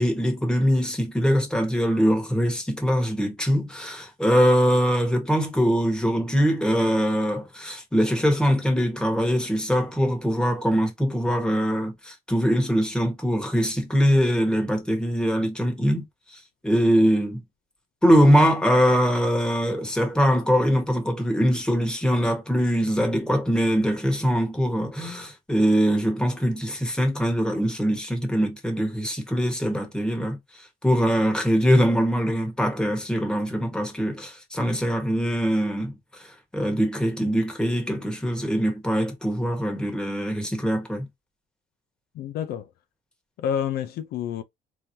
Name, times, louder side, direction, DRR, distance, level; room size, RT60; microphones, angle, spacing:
voice 1, 0.0-16.0 16.3-17.4 18.0-41.1, equal, 5° left, 1.3 m, -22 dB
voice 2, 42.1-42.7 43.4-44.4, left 9 dB, 70° left, 0.5 m, -28 dB
3.7 x 3.0 x 2.7 m
cardioid pair, 110°, 17 cm